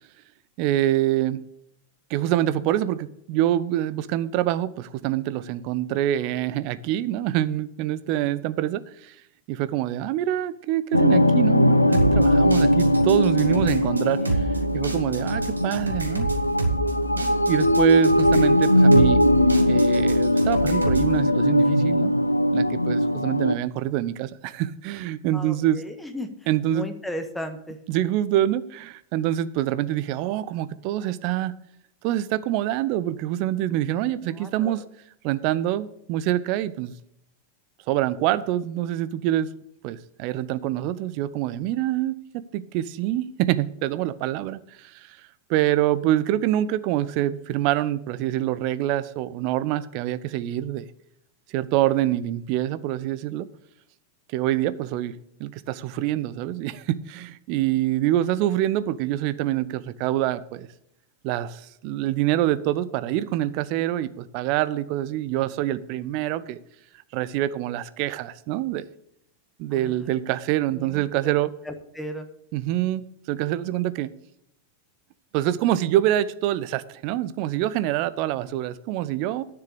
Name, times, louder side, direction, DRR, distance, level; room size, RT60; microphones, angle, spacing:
voice 1, 0.6-1.4 2.1-9.1 9.5-14.2 14.7-16.3 17.2-19.2 19.7-22.1 22.5-25.8 26.5-26.9 27.9-31.6 32.0-34.8 35.2-36.9 37.9-39.5 39.8-45.2 45.5-50.9 51.5-53.5 54.3-55.1 55.4-60.7 61.2-66.6 67.1-68.8 69.6-71.5 72.5-74.1 75.3-79.4, right 13 dB, 45° right, 15 dB, 0.7 m, -25 dB
sound 1, 10.9-23.6, left 1 dB, 85° left, 0.5 m, -20 dB
sound 2, 11.9-21.1, right 3 dB, 80° right, 1.5 m, -30 dB
voice 2, 14.0-14.4 25.3-27.8 34.2-34.7 69.7-70.1 70.7-71.3 71.6-72.3, equal, 5° left, 7 dB, 1.5 m, -36 dB
9.7 x 7.0 x 6.7 m, 0.75 s
figure-of-eight pair, 90°, 0 cm